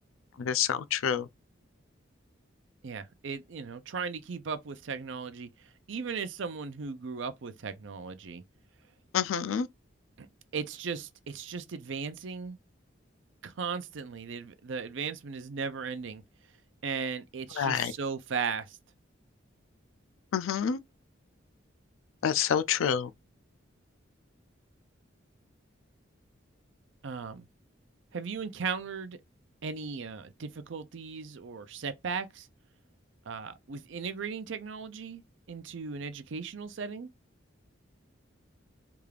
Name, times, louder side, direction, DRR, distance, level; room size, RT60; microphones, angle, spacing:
voice 1, 0.4-1.2 9.1-9.7 17.6-17.9 20.3-20.8 22.2-23.1, left 8 dB, 85° left, 0.4 m, -27 dB
voice 2, 2.8-5.5 5.9-8.4 10.2-10.3 10.5-12.6 13.4-16.2 16.8-18.8 27.0-27.5 28.1-29.2 29.6-32.5 33.3-35.2 35.5-37.1, right 5 dB, 70° right, 0.5 m, -37 dB
3.5 x 2.4 x 3.2 m
head